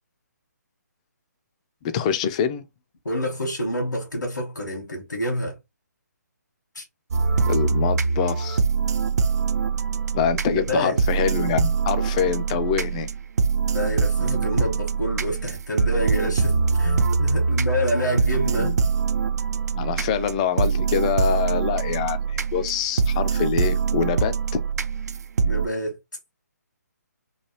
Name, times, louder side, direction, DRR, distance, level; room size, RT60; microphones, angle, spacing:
voice 1, 1.9-2.6 7.5-8.6 10.1-13.1 18.6-18.9 19.8-24.6, left 8 dB, 20° left, 0.3 m, -25 dB
voice 2, 3.0-5.5 6.7-6.8 10.5-11.0 13.7-18.8 25.4-26.0, equal, 90° left, 1.2 m, -27 dB
sound 1, 7.1-25.7, right 5 dB, 65° right, 0.4 m, -23 dB
3.0 x 2.2 x 3.0 m
figure-of-eight pair, 145°, 10 cm